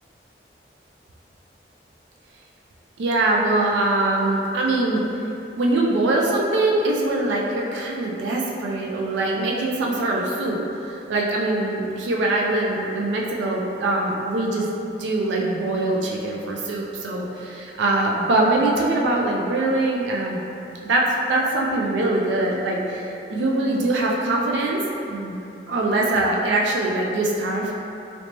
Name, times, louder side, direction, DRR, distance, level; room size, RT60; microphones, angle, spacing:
voice 1, 3.0-5.0 5.6-10.6 10.9-14.7 15.0-20.4 20.8-24.8 25.1-25.4 25.7-27.7, right 2 dB, 90° right, -2 dB, 0.4 m, -23 dB
3.2 x 2.9 x 2.8 m, 2.8 s
head